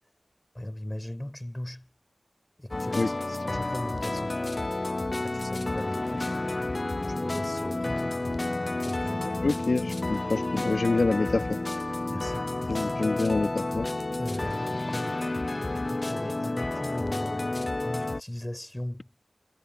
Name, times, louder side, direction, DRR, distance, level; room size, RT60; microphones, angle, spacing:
voice 1, 0.5-1.9 2.6-4.4 5.2-6.5 7.1-8.2 8.8-9.4 12.1-13.0 14.2-15.6 15.9-19.1, left 1 dB, 15° left, 7.5 m, -38 dB
sound 1, 2.7-18.2, left 2 dB, 45° left, 0.5 m, -30 dB
voice 2, 9.4-11.5 12.7-13.9, left 3 dB, 75° left, 2.5 m, -27 dB
wide cardioid pair, 55°, 0 cm